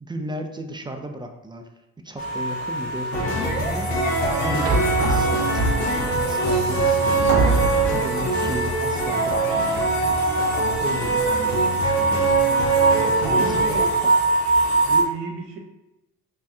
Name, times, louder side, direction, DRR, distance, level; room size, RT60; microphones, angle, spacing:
voice 1, 0.0-1.7 2.0-4.1 4.4-10.1 10.8-12.5 13.1-13.7 14.0-14.2, right 1 dB, 10° right, 3 dB, 0.4 m, -35 dB
sound 1, 2.2-15.0, right 2 dB, 55° left, 1.2 m, -25 dB
sound 2, 3.1-14.0, right 3 dB, 85° left, 0.8 m, -23 dB
sound 3, 4.6-6.1 6.8-6.9 7.3-8.1, right 2 dB, 55° right, 0.8 m, -23 dB
voice 2, 11.1-11.6 13.2-13.9 14.8-15.6, right 4 dB, 85° right, 1 dB, 0.7 m, -34 dB
2.7 x 2.3 x 3.3 m, 1.0 s
hypercardioid pair, 50°, 43 cm